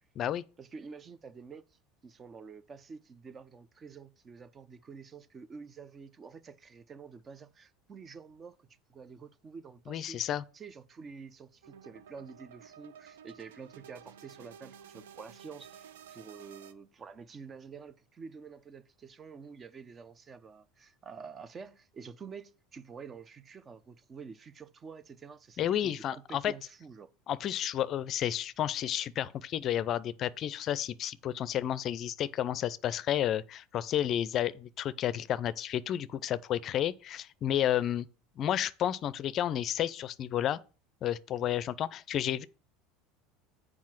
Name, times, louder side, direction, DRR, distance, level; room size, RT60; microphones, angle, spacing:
voice 1, 0.6-27.1, right 5 dB, 30° right, 0.7 m, -48 dB
voice 2, 9.9-10.4 25.6-26.5 27.3-38.1 38.4-40.6 41.0-42.5, left 11 dB, 45° left, 0.4 m, -31 dB
sound 1, 11.6-16.7, right 8 dB, 80° right, 0.5 m, -52 dB
7.3 x 4.8 x 6.1 m
hypercardioid pair, 80°, 0 cm